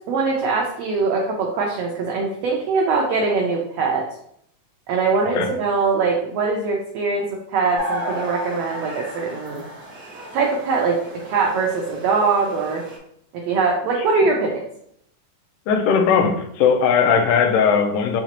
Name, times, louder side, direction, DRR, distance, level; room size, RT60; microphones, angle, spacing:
voice 1, 0.1-4.0 4.9-9.6 10.3-11.0 11.2-12.8 13.5-14.6, right 4 dB, 90° right, 0 dB, 1.4 m, -22 dB
sound 1, 7.7-13.0, equal, 65° right, 1.1 m, -33 dB
voice 2, 15.7-18.2, left 6 dB, 90° left, 4 dB, 2.2 m, -18 dB
6.1 x 2.9 x 2.8 m, 0.71 s
omnidirectional pair, 3.7 m